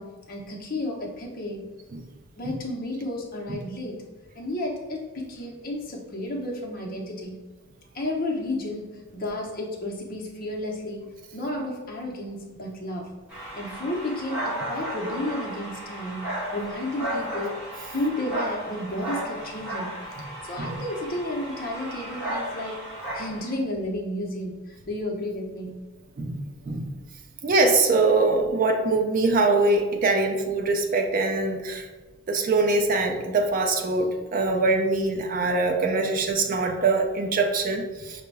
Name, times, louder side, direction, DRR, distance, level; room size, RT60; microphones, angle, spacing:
voice 1, 0.0-1.6 2.4-4.0 4.3-7.4 7.9-13.2 13.5-17.6 17.9-22.8 23.1-25.8, left 1 dB, 45° left, 0 dB, 0.7 m, -32 dB
sound 1, 13.3-23.5, right 1 dB, 5° right, 1.2 m, -34 dB
voice 2, 26.2-26.9 27.4-31.9 32.3-38.2, right 3 dB, 40° right, 4 dB, 0.4 m, -23 dB
5.9 x 2.2 x 3.3 m, 1.3 s
head